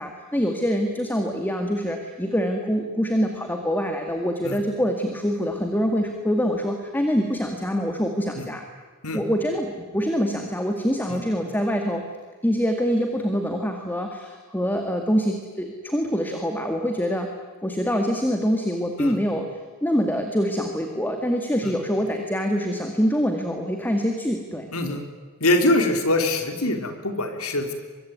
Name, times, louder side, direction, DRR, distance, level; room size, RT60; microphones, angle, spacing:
voice 1, 0.0-8.6 9.1-12.0 12.4-17.3 17.6-19.4 19.8-24.7, equal, 10° left, 4 dB, 2.1 m, -25 dB
voice 2, 24.7-25.0 25.4-27.7, left 1 dB, 75° left, 6 dB, 3.7 m, -23 dB
24.0 x 23.5 x 9.6 m, 1.5 s
head